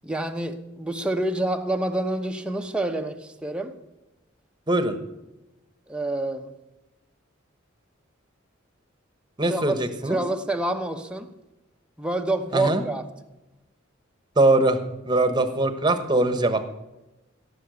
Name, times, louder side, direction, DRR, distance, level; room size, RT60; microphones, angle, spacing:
voice 1, 0.0-3.7 5.9-6.5 9.4-9.8 10.1-11.3 12.0-13.0, right 1 dB, 5° right, 5 dB, 0.8 m, -27 dB
voice 2, 9.4-10.2 12.5-12.8 14.4-14.8 15.0-16.7, right 2 dB, 20° right, 10 dB, 1.1 m, -21 dB
16.5 x 6.9 x 6.9 m, 0.99 s
head